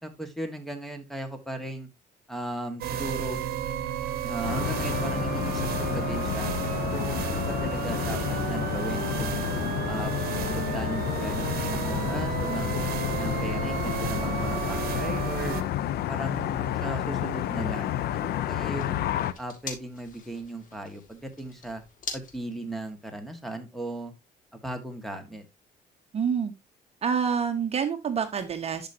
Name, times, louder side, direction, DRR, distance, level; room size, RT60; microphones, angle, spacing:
voice 1, 0.0-1.9 2.3-3.4 4.2-6.5 6.9-8.2 8.5-9.4 9.8-10.3 10.5-12.8 13.2-15.6 16.1-19.0 19.4-21.8 22.1-24.1 24.5-25.4, right 1 dB, ahead, 7 dB, 1.7 m, -37 dB
sound 1, 2.8-15.6, right 9 dB, 65° right, 1.1 m, -32 dB
sound 2, 4.4-19.3, left 12 dB, 70° left, 0.6 m, -30 dB
sound 3, 18.4-23.5, left 4 dB, 50° left, 2.7 m, -44 dB
voice 2, 26.1-26.5 27.0-28.9, right 7 dB, 35° right, 7 dB, 1.0 m, -27 dB
11.5 x 5.1 x 2.8 m, 0.22 s
cardioid pair, 110°, 17 cm